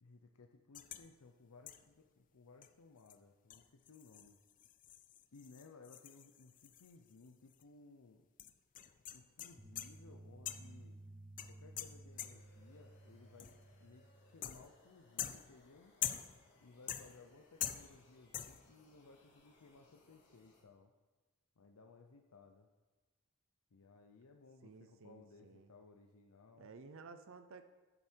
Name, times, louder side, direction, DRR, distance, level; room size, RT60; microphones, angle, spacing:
voice 1, 0.0-4.4 5.3-8.3 9.1-11.0 11.5-13.5 13.8-15.9 16.6-20.9 21.6-22.7 23.7-26.7, left 4 dB, 75° left, 4 dB, 0.6 m, -61 dB
sound 1, 0.7-1.1 1.7-2.0 2.6-2.7 3.1-3.2 3.5-7.3 7.5-7.6 8.4-10.0 10.5-10.8 11.4-12.6 13.4-13.7 14.4-14.8 15.2-16.5 16.9-17.3 17.6-18.1 18.3-18.7, left 11 dB, 35° left, 0.5 m, -45 dB
sound 2, 9.6-14.6, right 1 dB, 15° right, 0.8 m, -56 dB
sound 3, 12.1-20.6, left 2 dB, 55° left, 3.2 m, -69 dB
voice 2, 24.6-25.7 26.6-27.7, right 4 dB, 65° right, 10 dB, 0.6 m, -55 dB
10.5 x 8.0 x 4.5 m, 1.2 s
head